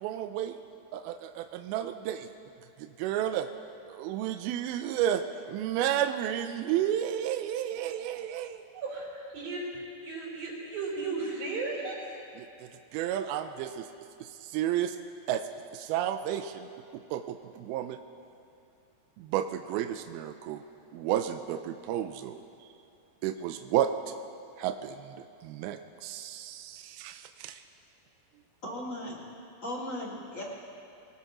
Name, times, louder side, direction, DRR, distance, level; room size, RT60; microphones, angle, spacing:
voice 1, 0.0-0.5 0.9-2.3 3.0-3.5 3.9-5.2 5.5-8.6 12.4-12.5 12.9-13.8 14.5-15.0 15.3-15.4 15.7-16.7 17.1-17.2 17.6-18.0 19.2-20.6 20.9-22.4 23.2-23.9 24.6-25.1 25.4-27.6, right 11 dB, 85° right, 7 dB, 2.2 m, -31 dB
voice 2, 8.7-9.7 10.0-12.0, right 3 dB, 60° right, -6 dB, 5.3 m, -35 dB
voice 3, 28.6-29.2 29.6-30.4, left 1 dB, 30° left, -5 dB, 1.6 m, -37 dB
25.0 x 19.0 x 3.0 m, 2.6 s
omnidirectional pair, 4.9 m